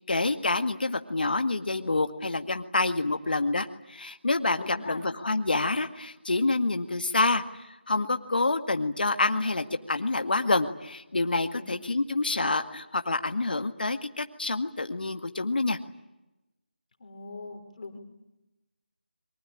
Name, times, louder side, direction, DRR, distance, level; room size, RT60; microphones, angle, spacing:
voice 1, 0.1-15.8, left 3 dB, 60° left, 7 dB, 1.9 m, -27 dB
voice 2, 4.6-5.0 11.5-11.8 17.0-18.0, left 3 dB, 40° left, 5 dB, 4.0 m, -41 dB
25.5 x 24.0 x 8.9 m, 0.96 s
figure-of-eight pair, 165°, 6 cm